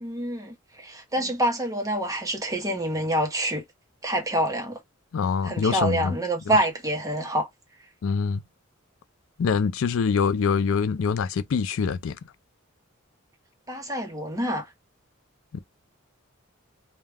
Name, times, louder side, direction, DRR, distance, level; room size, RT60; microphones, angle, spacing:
voice 1, 0.0-3.6 4.0-4.8 5.4-7.5 13.7-14.7, right 1 dB, 15° right, 0.8 m, -27 dB
voice 2, 5.1-6.1 8.0-8.4 9.4-12.2, left 5 dB, 65° left, 0.4 m, -24 dB
2.3 x 2.2 x 3.3 m
head